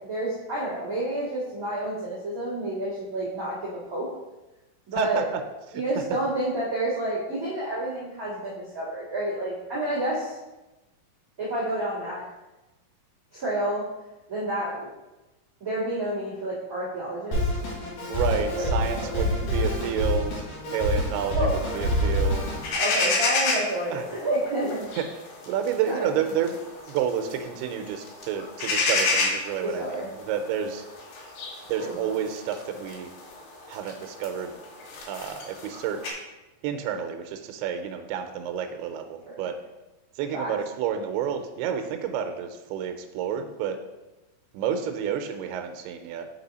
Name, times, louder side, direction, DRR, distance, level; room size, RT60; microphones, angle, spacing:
voice 1, 0.0-4.1 4.9-5.2 5.7-10.4 11.4-12.2 13.3-13.8 14.3-14.9 15.6-17.6 18.5-18.7 19.0-19.5 21.3-21.5 22.7-24.9 25.9-26.1 29.6-30.1 31.8-32.0 39.2-39.5 40.3-40.5, right 1 dB, 40° right, -10 dB, 1.2 m, -29 dB
voice 2, 5.7-6.0 18.1-22.5 23.9-24.0 25.0-25.1 25.4-26.6 26.9-30.9 31.7-33.1 33.7-34.6 35.1-36.2 36.6-39.5 40.2-43.8 44.5-46.3, right 8 dB, 90° right, 6 dB, 2.5 m, -30 dB
Drum kit, 17.3-22.7, left 1 dB, 60° left, 3.0 m, -27 dB
sound 1, 21.6-36.1, left 3 dB, 80° left, 3.1 m, -31 dB
5.9 x 5.4 x 4.0 m, 1.1 s
omnidirectional pair, 4.5 m